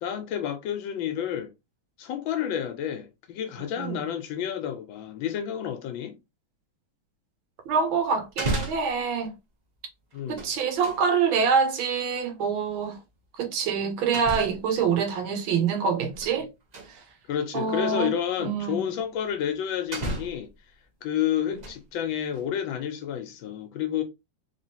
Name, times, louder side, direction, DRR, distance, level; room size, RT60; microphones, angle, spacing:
voice 1, 0.0-1.5 2.0-6.2 10.1-10.5 17.3-20.5 21.0-24.0, left 9 dB, 80° left, 1.3 m, -30 dB
voice 2, 3.6-4.0 7.7-9.3 10.3-13.0 13.4-16.5 16.9-17.0 17.5-18.1 18.4-18.8, right 6 dB, 90° right, 1.6 m, -26 dB
sound 1, 7.7-7.8 8.2-9.0 10.1-11.0 12.7-12.8 14.1-14.7 15.8-16.4 16.7-16.9 17.8-17.9 19.3-19.4 19.9-20.5 21.3-21.9 22.3-22.4, right 2 dB, 55° right, 0.4 m, -33 dB
3.5 x 3.3 x 2.8 m
omnidirectional pair, 2.2 m